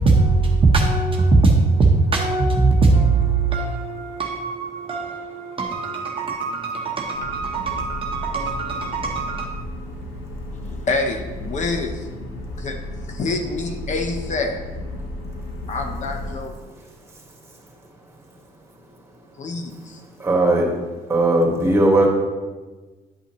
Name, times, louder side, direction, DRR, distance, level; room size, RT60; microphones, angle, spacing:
voice 1, 0.0-9.4, right 3 dB, 30° right, 1 dB, 1.0 m, -20 dB
sound 1, 7.1-16.3, left 1 dB, 80° left, 1.3 m, -33 dB
voice 2, 10.7-12.1 12.6-12.8 13.1-14.6 15.7-16.5 19.4-20.0, left 3 dB, 45° left, 4 dB, 0.9 m, -27 dB
voice 3, 20.2-20.7 21.1-22.1, right 1 dB, 15° right, -1 dB, 1.9 m, -17 dB
10.5 x 5.6 x 3.1 m, 1.3 s
cardioid pair, 110°, 17 cm